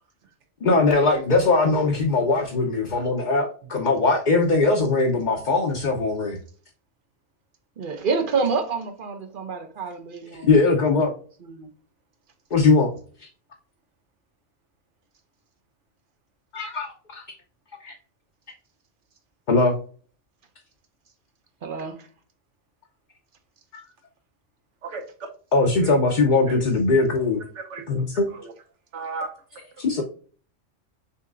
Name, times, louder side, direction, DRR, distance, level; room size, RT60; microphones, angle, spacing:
voice 1, 0.6-6.4 10.4-11.1 12.5-12.9 16.5-17.2 17.8-17.9 19.5-19.8 25.5-27.4 27.9-28.3 29.8-30.0, left 3 dB, 45° left, 0.8 m, -20 dB
voice 2, 7.8-11.2 11.4-11.7 21.6-22.1, right 4 dB, 50° right, 1.0 m, -28 dB
voice 3, 24.8-25.3 25.8-26.0 26.5-26.6 27.5-27.9 28.1-28.5 28.9-30.0, right 4 dB, 80° right, 1.2 m, -36 dB
6.5 x 2.8 x 2.4 m
omnidirectional pair, 1.2 m